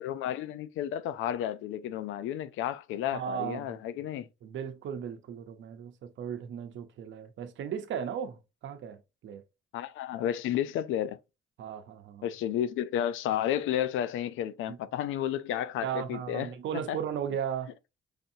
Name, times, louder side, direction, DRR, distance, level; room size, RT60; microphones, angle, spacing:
voice 1, 0.0-4.3 9.7-11.2 12.2-16.5 16.9-17.0, left 11 dB, 85° left, 0.4 m, -32 dB
voice 2, 3.1-3.8 4.4-9.4 11.6-12.3 14.7-14.8 15.8-17.7, right 8 dB, 70° right, 0.8 m, -36 dB
5.0 x 2.7 x 2.6 m
cardioid pair, 90°, 20 cm